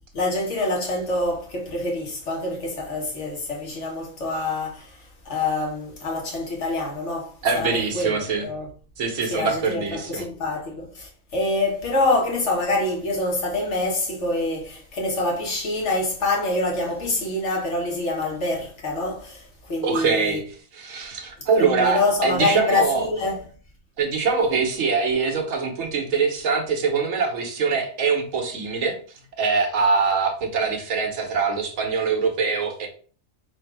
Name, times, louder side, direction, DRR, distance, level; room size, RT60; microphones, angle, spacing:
voice 1, 0.1-7.7 7.9-8.7 9.3-20.4 21.6-23.4, left 2 dB, 60° left, 1.6 m, -26 dB
voice 2, 7.4-8.4 9.0-10.3 19.8-23.1 24.0-29.0 29.4-32.9, right 5 dB, 75° right, 1.3 m, -23 dB
4.3 x 2.6 x 4.6 m
omnidirectional pair, 1.4 m